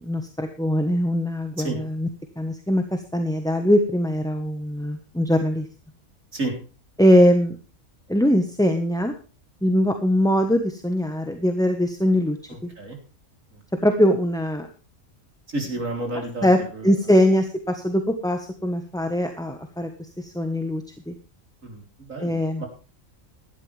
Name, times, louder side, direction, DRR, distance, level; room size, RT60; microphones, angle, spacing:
voice 1, 0.0-2.1 2.4-5.7 7.0-7.6 8.1-9.1 9.6-12.7 13.8-14.7 16.4-16.6 16.8-21.1 22.2-22.6, equal, 5° left, 6 dB, 1.1 m, -22 dB
voice 2, 12.5-13.0 13.5-13.6 15.5-16.9 21.6-22.7, right 2 dB, 70° right, 3 dB, 4.2 m, -31 dB
16.0 x 12.0 x 3.4 m, 0.35 s
omnidirectional pair, 1.4 m